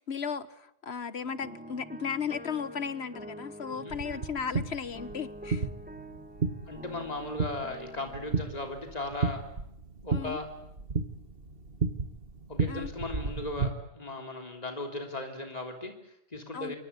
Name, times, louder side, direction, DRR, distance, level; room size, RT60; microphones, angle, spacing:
voice 1, 0.0-5.7 10.1-10.4 12.7-12.9 16.5-16.7, left 6 dB, 80° left, 14 dB, 1.5 m, -35 dB
sound 1, 1.2-8.5, equal, 10° right, 1.7 m, -46 dB
voice 2, 3.7-4.3 6.7-9.5 10.0-10.5 12.5-16.8, left 2 dB, 40° left, 3 dB, 3.6 m, -37 dB
sound 2, 3.9-13.7, right 4 dB, 60° right, 2.1 m, -34 dB
27.0 x 23.5 x 8.4 m, 0.77 s
omnidirectional pair, 1.1 m